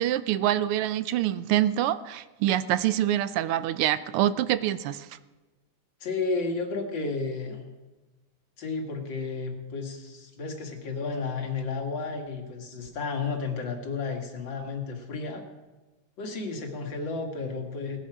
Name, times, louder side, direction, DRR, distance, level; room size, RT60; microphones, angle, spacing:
voice 1, 0.0-5.1, right 12 dB, 80° right, 14 dB, 1.5 m, -25 dB
voice 2, 6.0-7.6 8.6-15.4 16.2-18.0, left 4 dB, 60° left, 3 dB, 2.4 m, -32 dB
18.5 x 11.0 x 4.9 m, 1.2 s
omnidirectional pair, 2.4 m